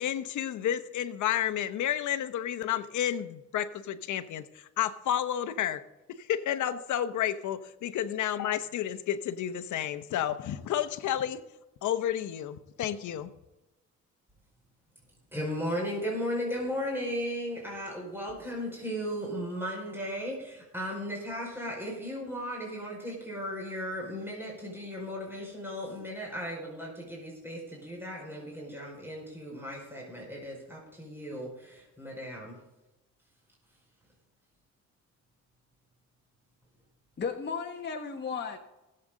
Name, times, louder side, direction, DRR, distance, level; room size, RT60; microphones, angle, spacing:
voice 1, 0.0-5.8 6.1-11.4 11.8-13.3, left 10 dB, 75° left, 11 dB, 1.0 m, -31 dB
voice 2, 15.3-32.6, equal, 5° right, -3 dB, 5.1 m, -36 dB
voice 3, 37.2-38.6, left 5 dB, 35° left, 2 dB, 1.3 m, -34 dB
19.5 x 7.9 x 3.9 m, 1.0 s
cardioid pair, 90°, 30 cm